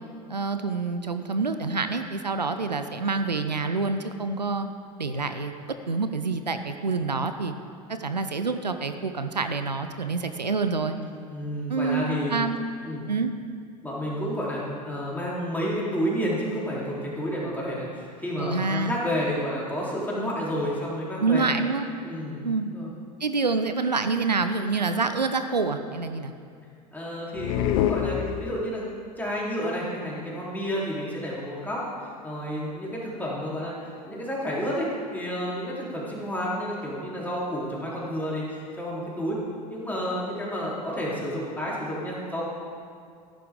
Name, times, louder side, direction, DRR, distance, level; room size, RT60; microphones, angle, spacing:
voice 1, 0.3-4.7 5.0-5.5 5.9-7.5 7.9-11.0 11.7-12.6 13.1-13.3 18.4-19.0 21.2-21.9 22.4-22.7 23.2-26.3, right 4 dB, 90° right, 8 dB, 0.6 m, -27 dB
voice 2, 11.3-12.4 12.8-13.1 13.8-21.5 22.0-22.9 26.9-28.9 29.2-39.4 39.7-42.5, equal, 10° left, -6 dB, 3.6 m, -30 dB
sound 1, 27.3-28.9, left 10 dB, 55° left, 0.7 m, -26 dB
14.0 x 11.5 x 3.7 m, 2.3 s
figure-of-eight pair, 75°, 21 cm